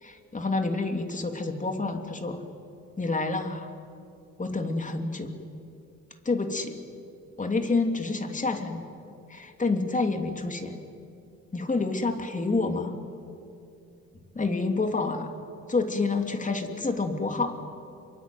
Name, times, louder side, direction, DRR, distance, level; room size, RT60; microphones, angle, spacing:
voice 1, 0.0-2.4 3.0-3.7 4.4-5.3 6.2-6.8 7.4-8.9 9.3-10.8 11.5-12.9 14.3-15.3 15.7-17.5, left 3 dB, 25° left, 5 dB, 3.2 m, -28 dB
27.5 x 23.5 x 9.4 m, 2.6 s
cardioid pair, 90°, 30 cm